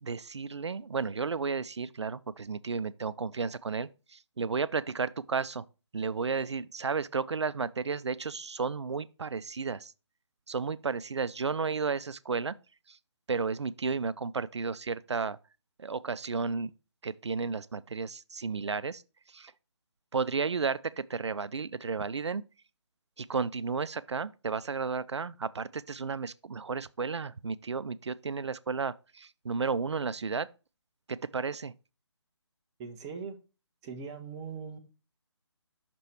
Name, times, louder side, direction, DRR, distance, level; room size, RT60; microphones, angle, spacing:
voice 1, 0.0-5.7 5.9-9.9 10.5-12.6 12.9-13.0 13.3-15.4 15.8-16.7 17.0-19.0 19.3-19.5 20.1-22.4 23.2-30.5 31.1-31.7, right 5 dB, 70° right, 0.4 m, -33 dB
voice 2, 32.8-33.4 33.8-34.8, right 5 dB, 10° right, 0.4 m, -40 dB
6.0 x 4.7 x 4.3 m
figure-of-eight pair, 145°, 15 cm